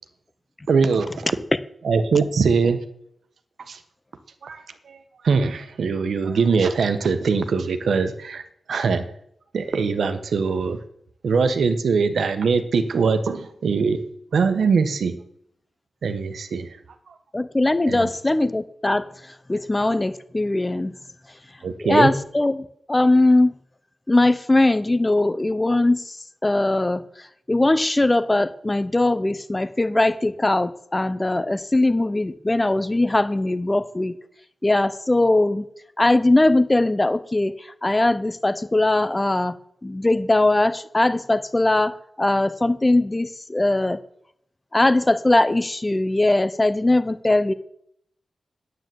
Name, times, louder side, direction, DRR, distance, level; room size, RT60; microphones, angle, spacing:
voice 1, 0.7-1.3 1.8-2.8 3.7-3.8 4.4-5.0 5.2-9.0 9.5-10.8 11.2-14.0 14.3-15.1 16.0-16.7 17.9-18.1 21.6-22.1, right 5 dB, 75° right, 9 dB, 1.2 m, -22 dB
voice 2, 17.3-20.9 21.8-23.5 24.1-26.2 26.4-34.1 34.6-35.6 36.0-39.5 39.8-44.0 44.7-47.5, left 2 dB, 15° left, 14 dB, 0.6 m, -20 dB
9.5 x 9.2 x 7.7 m, 0.71 s
wide cardioid pair, 170°, 0 cm